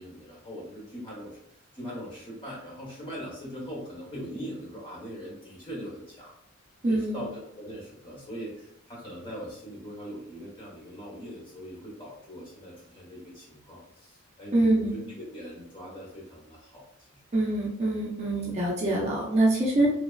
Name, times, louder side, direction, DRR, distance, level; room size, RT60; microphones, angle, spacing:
voice 1, 0.0-1.4 1.7-6.3 6.9-17.2, equal, 25° left, -5 dB, 1.0 m, -41 dB
voice 2, 6.8-7.3 14.5-14.9 17.3-19.9, right 1 dB, 30° right, -3 dB, 0.4 m, -24 dB
3.1 x 2.2 x 2.2 m, 0.73 s
head